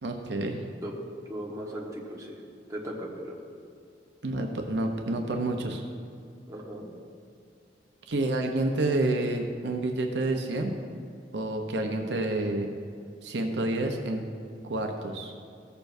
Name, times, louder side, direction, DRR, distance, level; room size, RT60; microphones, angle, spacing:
voice 1, 0.0-0.6 4.2-5.8 8.1-10.8 11.3-12.7 13.2-14.2 14.6-15.3, right 2 dB, 75° right, 3 dB, 0.7 m, -29 dB
voice 2, 1.3-2.3 2.7-3.4 6.5-6.9, equal, 20° right, -3 dB, 1.4 m, -37 dB
15.5 x 6.8 x 2.7 m, 2.3 s
head